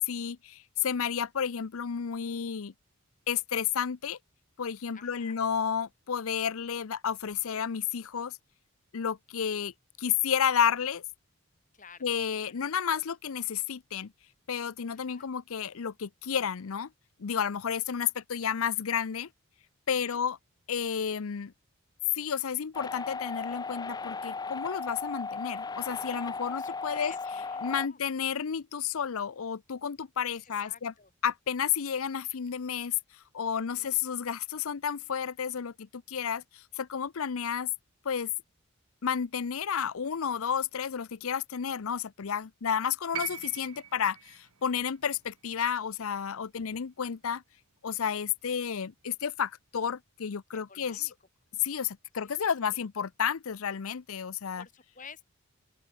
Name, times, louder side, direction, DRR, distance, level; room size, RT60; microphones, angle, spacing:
voice 1, 0.1-2.7 3.3-4.2 4.6-8.4 8.9-9.7 10.0-11.0 12.0-14.1 14.5-16.9 17.2-19.3 19.9-20.4 20.7-21.5 22.1-27.1 27.6-30.9 31.2-32.9 33.3-37.7 38.0-38.3 39.0-47.4 47.8-51.1 51.6-54.7, left 7 dB, 70° left, 0.6 m, -31 dB
voice 2, 4.9-5.4 11.7-12.0 12.4-12.5 14.9-15.3 19.9-20.2 26.5-28.0 30.3-31.1 33.5-34.0 50.5-51.1 52.2-52.9 54.6-55.2, left 5 dB, 35° left, 4.0 m, -52 dB
sound 1, 22.7-27.9, left 4 dB, 20° left, 0.4 m, -36 dB
sound 2, 43.1-47.3 48.5-48.6, right 10 dB, 80° right, 2.2 m, -43 dB
open air
head